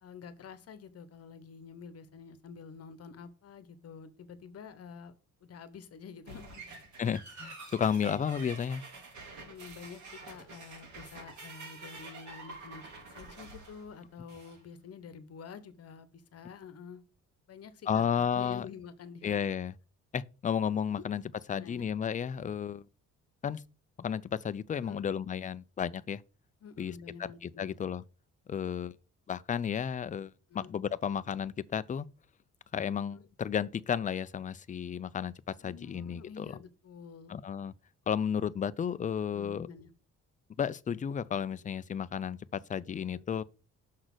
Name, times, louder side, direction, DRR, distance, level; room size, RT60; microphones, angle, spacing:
voice 1, 0.0-5.1 5.4-6.6 9.4-12.9 13.1-17.0 17.5-19.3 20.9-21.0 21.5-21.9 24.8-25.1 26.6-27.8 30.5-30.7 33.1-33.2 35.6-37.4 39.3-39.9 43.1-43.2, left 6 dB, 55° left, 1.0 m, -48 dB
sound 1, 6.3-14.6, right 3 dB, 65° right, 2.6 m, -48 dB
voice 2, 7.0-8.8 17.9-18.7 19.2-19.7 20.1-21.2 21.5-22.8 23.4-23.6 24.0-26.2 26.8-26.9 27.2-28.0 28.5-29.0 29.3-32.1 32.7-36.6 37.3-37.7 38.1-39.7 40.6-43.4, left 8 dB, 25° left, 0.4 m, -33 dB
6.4 x 4.0 x 6.1 m
cardioid pair, 90°, 30 cm